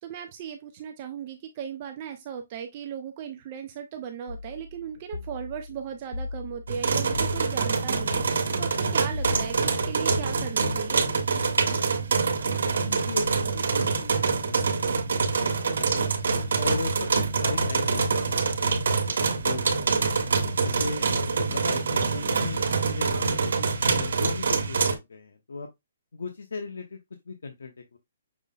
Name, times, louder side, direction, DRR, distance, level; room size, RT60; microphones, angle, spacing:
voice 1, 0.0-11.0, right 8 dB, 25° right, 0.5 m, -37 dB
sound 1, 4.3-8.2 9.1-10.4, left 3 dB, 45° left, 0.6 m, -39 dB
sound 2, 6.7-25.0, right 4 dB, 60° right, 1.2 m, -25 dB
voice 2, 12.6-16.1 16.6-20.0 20.6-25.7 26.1-28.0, left 4 dB, 90° left, 0.9 m, -38 dB
6.1 x 2.1 x 3.8 m
hypercardioid pair, 180°, 0 cm